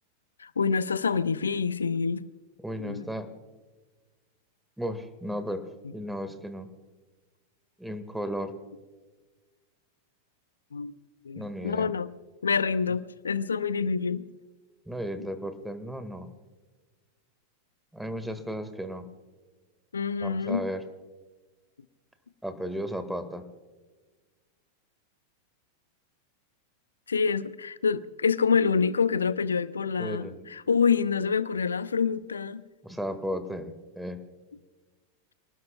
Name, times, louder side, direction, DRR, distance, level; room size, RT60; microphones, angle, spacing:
voice 1, 0.4-2.2 2.8-3.1 10.7-10.9 11.3-12.1 12.4-14.2 19.9-20.7 27.1-32.6, left 5 dB, 70° left, 15 dB, 0.8 m, -27 dB
voice 2, 2.6-3.3 4.8-5.6 5.9-6.7 7.8-8.5 11.3-11.9 14.8-16.3 17.9-19.1 20.2-20.8 22.4-23.4 30.0-30.5 32.8-34.2, equal, 5° right, 10 dB, 1.7 m, -34 dB
28.5 x 19.0 x 2.3 m, 1.3 s
figure-of-eight pair, 90°, 0 cm